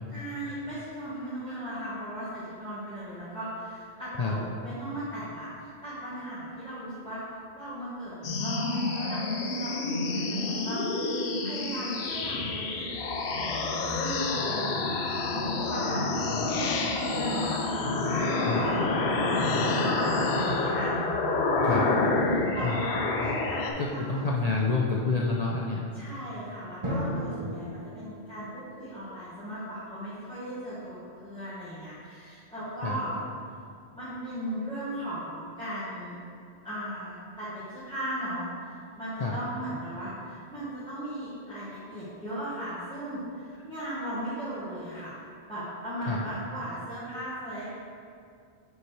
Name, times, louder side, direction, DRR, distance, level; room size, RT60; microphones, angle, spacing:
voice 1, 0.1-9.3 9.5-14.8 15.2-20.9 21.6-22.9 23.1-24.3 25.9-33.2 33.9-36.1 36.6-45.2 45.5-47.8, equal, 5° left, -13 dB, 1.2 m, -37 dB
sound 1, 8.2-23.7, left 3 dB, 75° left, 0.9 m, -28 dB
voice 2, 23.8-25.9 27.4-27.5 32.8-33.0 39.2-39.4 46.1-46.2, left 3 dB, 50° left, -3 dB, 0.5 m, -28 dB
Drum, 26.8-29.3, equal, 30° right, 0.9 m, -35 dB
7.0 x 4.8 x 3.2 m, 2.4 s
omnidirectional pair, 1.1 m